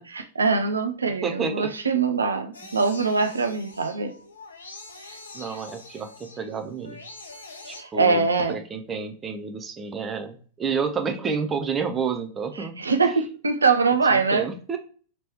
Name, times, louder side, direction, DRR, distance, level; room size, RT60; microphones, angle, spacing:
voice 1, 0.0-4.1 7.7-8.6 12.6-14.5, right 4 dB, 75° right, 7 dB, 0.4 m, -23 dB
voice 2, 1.2-1.7 5.3-7.0 7.7-12.8 14.1-14.8, right 5 dB, 20° right, 6 dB, 0.6 m, -30 dB
sound 1, 2.5-7.8, left 3 dB, 75° left, 0.5 m, -44 dB
3.0 x 3.0 x 4.2 m, 0.42 s
figure-of-eight pair, 90°, 0 cm